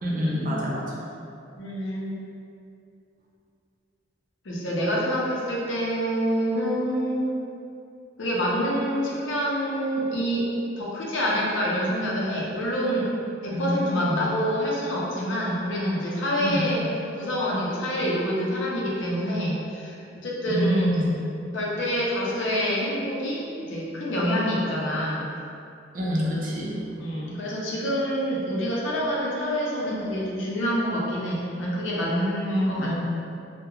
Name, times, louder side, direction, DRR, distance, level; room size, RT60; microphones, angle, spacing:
voice 1, 0.0-0.9 13.5-14.3 16.4-16.7 20.5-21.1 25.9-26.8 32.8-32.9, equal, 45° right, -4 dB, 0.5 m, -27 dB
voice 2, 1.6-2.2 4.4-7.3 8.2-13.1 13.4-16.8 17.1-20.9 21.5-25.3 27.0-32.9, equal, 85° left, -5 dB, 0.5 m, -26 dB
2.3 x 2.1 x 2.9 m, 2.6 s
head